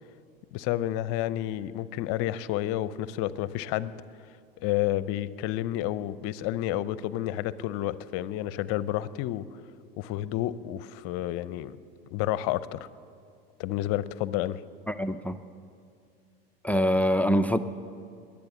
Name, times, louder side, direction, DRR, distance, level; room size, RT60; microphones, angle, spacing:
voice 1, 0.5-3.9 4.6-9.4 10.0-11.8 12.1-12.9 13.6-14.6, left 14 dB, 50° left, 17 dB, 0.7 m, -30 dB
voice 2, 14.9-15.4 16.6-17.6, equal, 5° left, 12 dB, 0.5 m, -24 dB
21.5 x 8.8 x 7.2 m, 2.3 s
hypercardioid pair, 85°, 29 cm